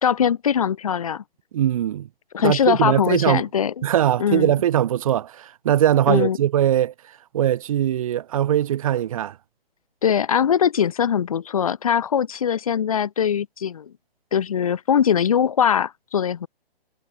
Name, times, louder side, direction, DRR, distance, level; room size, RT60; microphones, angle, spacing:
voice 1, 0.0-1.2 2.3-3.9 4.2-4.5 6.1-6.4 10.0-13.9 14.3-16.5, left 8 dB, 35° left, 0.4 m, -21 dB
voice 2, 1.5-2.1 2.4-3.4 3.8-6.9 7.3-9.3, right 11 dB, 35° right, 1.1 m, -21 dB
hypercardioid pair, 160°, 30 cm